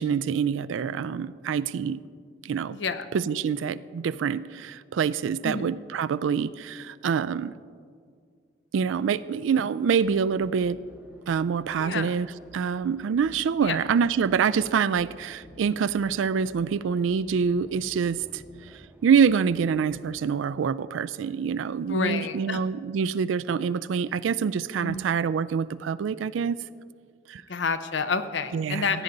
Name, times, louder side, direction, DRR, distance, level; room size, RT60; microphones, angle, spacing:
voice 1, 0.0-2.0 2.4-2.8 3.1-7.5 8.7-10.8 11.3-12.3 12.5-18.4 19.0-26.6 27.3-27.4 28.5-29.0, right 6 dB, 80° right, 17 dB, 0.3 m, -26 dB
voice 2, 2.7-3.0 5.4-5.7 11.8-12.1 13.6-13.8 21.9-22.6 24.8-25.0 27.5-29.0, left 4 dB, 70° left, 11 dB, 0.6 m, -29 dB
sound 1, 10.0-20.2, right 1 dB, 10° right, 0.7 m, -52 dB
16.0 x 9.3 x 3.9 m, 2.1 s
head